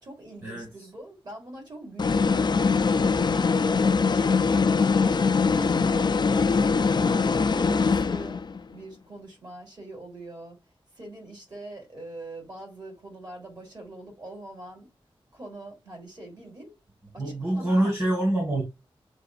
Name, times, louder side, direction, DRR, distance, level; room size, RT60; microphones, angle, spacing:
voice 1, 0.0-2.9 3.2-4.5 5.2-8.4 8.7-14.9 15.3-16.8 17.1-17.9, right 1 dB, 45° right, 3.3 m, -43 dB
sound 1, 2.0-8.6, left 5 dB, 50° left, 0.4 m, -22 dB
voice 2, 17.2-18.6, right 1 dB, 25° right, 2.0 m, -25 dB
7.4 x 2.5 x 2.6 m
wide cardioid pair, 80°, 10 cm